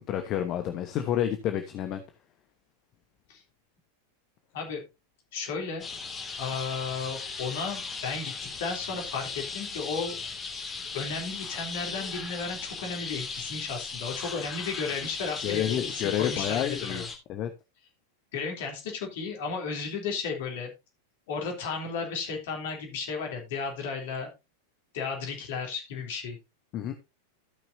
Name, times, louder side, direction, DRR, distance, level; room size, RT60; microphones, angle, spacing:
voice 1, 0.0-2.0 15.4-17.0 17.3-17.5 26.7-26.9, left 10 dB, 35° left, 7 dB, 1.0 m, -29 dB
voice 2, 5.3-5.8 6.4-8.3 8.6-10.2 10.9-17.1 18.3-20.7 21.3-24.3 24.9-26.4, left 5 dB, 55° left, 2 dB, 3.2 m, -34 dB
sound 1, 5.8-17.2, left 4 dB, 20° left, 2.3 m, -37 dB
15.5 x 6.0 x 2.7 m, 0.25 s
figure-of-eight pair, 90°, 0 cm